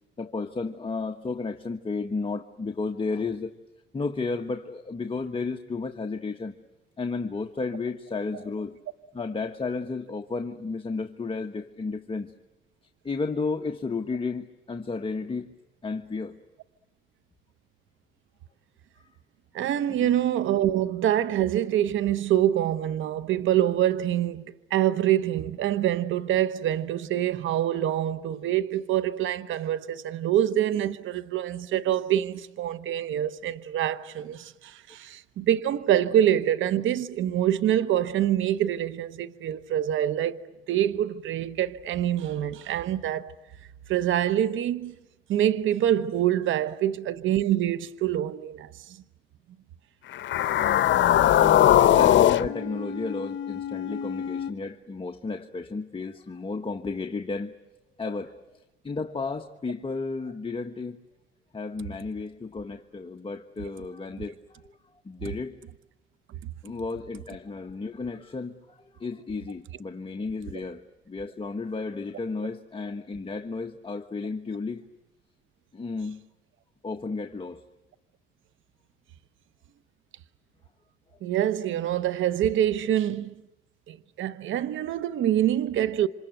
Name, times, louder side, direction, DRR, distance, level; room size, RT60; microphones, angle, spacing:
voice 1, 0.2-3.5 3.9-6.5 7.0-8.7 9.1-12.3 13.0-15.5 15.8-16.3 20.0-20.1 51.4-57.5 58.0-58.3 58.8-61.0 61.5-64.7 65.0-65.6 66.6-70.8 71.1-74.8 75.7-76.2 76.8-77.6, left 4 dB, 25° left, 1.3 m, -33 dB
voice 2, 19.5-40.4 40.7-43.3 43.9-44.9 45.3-49.0 81.2-83.3 83.9-86.1, right 11 dB, 80° right, 1.0 m, -25 dB
sound 1, 50.1-54.5, left 12 dB, 70° left, 0.9 m, -21 dB
28.0 x 26.0 x 7.9 m
cardioid pair, 90°, 20 cm